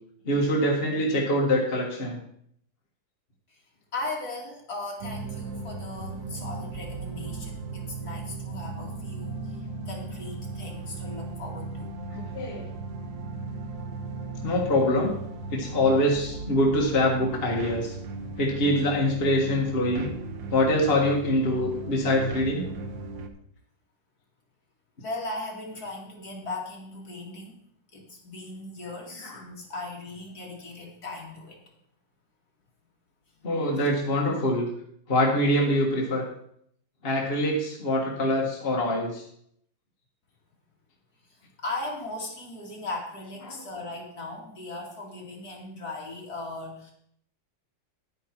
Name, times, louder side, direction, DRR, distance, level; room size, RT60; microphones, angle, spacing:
voice 1, 0.2-2.2 12.1-12.6 14.4-15.2 15.5-17.9 18.4-20.1 20.5-22.6 29.2-29.4 33.4-34.7 35.1-36.2 37.0-39.2 43.5-43.6, left 1 dB, 30° left, -1 dB, 1.7 m, -24 dB
voice 2, 3.9-11.9 25.0-27.5 27.9-31.6 41.3-46.9, left 2 dB, 50° left, -1 dB, 2.7 m, -38 dB
sound 1, 5.0-23.3, right 3 dB, 75° right, 1.6 m, -37 dB
10.0 x 9.5 x 4.5 m, 0.69 s
omnidirectional pair, 2.1 m